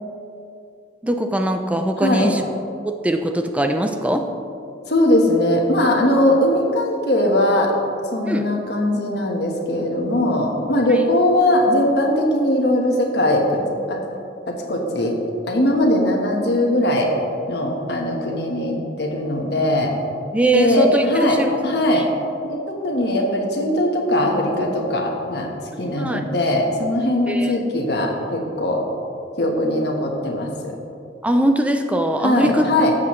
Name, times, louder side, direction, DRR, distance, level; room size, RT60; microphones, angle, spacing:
voice 1, 1.0-2.4 2.8-4.3 8.3-8.5 20.3-21.6 21.9-22.0 25.9-26.2 27.3-27.6 31.2-32.6, right 1 dB, 5° right, 5 dB, 0.4 m, -21 dB
voice 2, 2.0-2.3 4.9-7.7 8.1-13.6 13.9-14.0 14.5-15.2 15.5-17.1 17.5-19.9 20.5-22.1 22.4-25.5 25.8-28.8 29.4-30.7 32.2-32.9, left 1 dB, 60° left, 0 dB, 1.3 m, -20 dB
12.5 x 7.6 x 3.2 m, 2.6 s
head